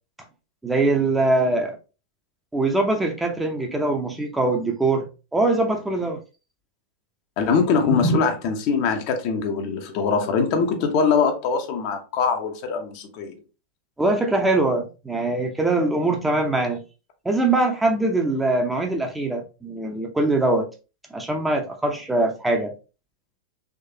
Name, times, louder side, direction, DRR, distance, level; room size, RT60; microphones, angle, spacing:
voice 1, 0.6-1.8 2.5-6.2 7.9-8.2 14.0-16.8 17.2-20.7 21.1-22.7, right 2 dB, 10° right, 0.7 m, -22 dB
voice 2, 7.4-13.4, left 5 dB, 45° left, 0.7 m, -22 dB
3.6 x 3.1 x 2.7 m
figure-of-eight pair, 90°, 0 cm